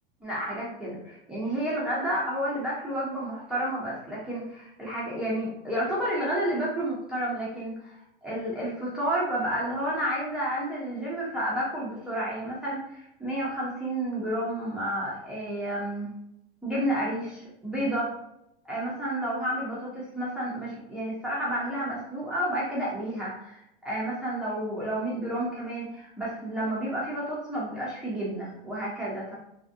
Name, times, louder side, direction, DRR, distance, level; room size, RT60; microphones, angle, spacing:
voice 1, 0.2-16.1 16.6-18.1 18.6-29.4, right 1 dB, 5° right, -7 dB, 0.3 m, -31 dB
2.6 x 2.4 x 2.4 m, 0.80 s
supercardioid pair, 150°, 29 cm